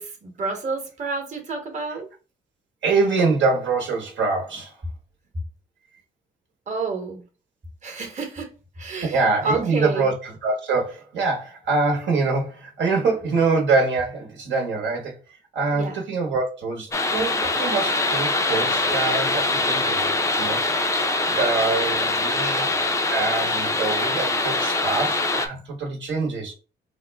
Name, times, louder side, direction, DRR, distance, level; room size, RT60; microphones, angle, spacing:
voice 1, 0.0-2.1 6.7-7.2 7.8-8.5 8.8-10.1 15.7-16.0, right 3 dB, 35° right, 1.1 m, -29 dB
voice 2, 2.8-4.7 9.1-15.1 15.5-20.1 20.4-22.7 23.1-26.5, right 4 dB, 65° right, 1.1 m, -24 dB
sound 1, 16.9-25.5, left 2 dB, 15° left, 0.5 m, -23 dB
3.6 x 2.1 x 3.4 m
cardioid pair, 90°, 20 cm